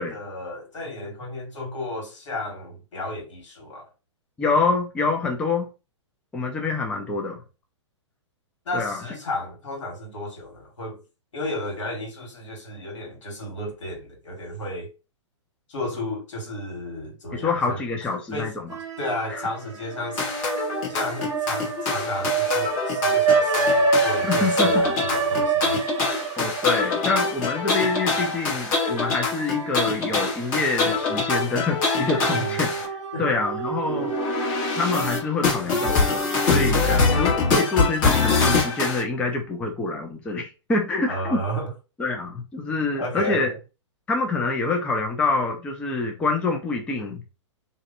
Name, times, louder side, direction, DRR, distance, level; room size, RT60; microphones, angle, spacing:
voice 1, 0.0-3.9 8.6-11.0 11.3-14.9 15.7-17.8 18.3-18.5 19.0-20.3 20.9-25.8 32.3-32.6 33.1-33.3 36.8-37.5 41.1-41.7 43.0-43.5, left 1 dB, 75° left, 1.4 m, -33 dB
voice 2, 4.4-5.7 6.3-7.4 8.7-9.0 17.3-18.5 19.3-19.4 24.2-24.8 26.4-32.7 33.2-34.1 34.7-36.8 37.2-41.4 42.0-43.5 44.1-47.2, left 3 dB, 5° left, 0.3 m, -26 dB
sound 1, 18.7-19.5 19.8-30.2 30.6-30.7 31.8-35.2, right 4 dB, 70° right, 0.6 m, -27 dB
sound 2, 20.2-32.9 33.9-39.0, left 4 dB, 40° left, 1.1 m, -24 dB
2.6 x 2.1 x 2.4 m
hypercardioid pair, 125°, 16 cm